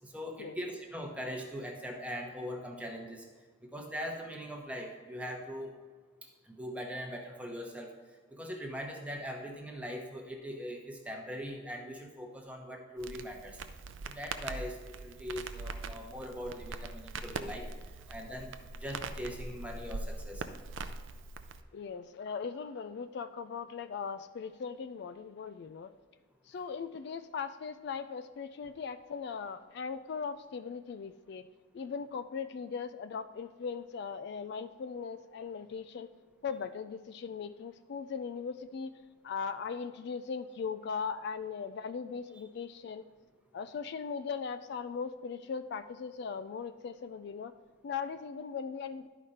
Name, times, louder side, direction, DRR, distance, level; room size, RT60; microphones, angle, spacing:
voice 1, 0.0-3.2 3.7-5.7 6.5-7.9 8.3-13.6 14.1-17.7 18.1-20.4, equal, 5° right, 1 dB, 1.0 m, -41 dB
Crackle, 13.0-21.6, right 3 dB, 75° right, 0.5 m, -42 dB
voice 2, 21.7-25.9 26.5-31.5 31.7-36.1 36.4-38.9 39.2-43.1 43.5-47.5 47.8-49.1, left 6 dB, 60° left, 11 dB, 0.3 m, -39 dB
11.5 x 5.0 x 4.2 m, 1.4 s
head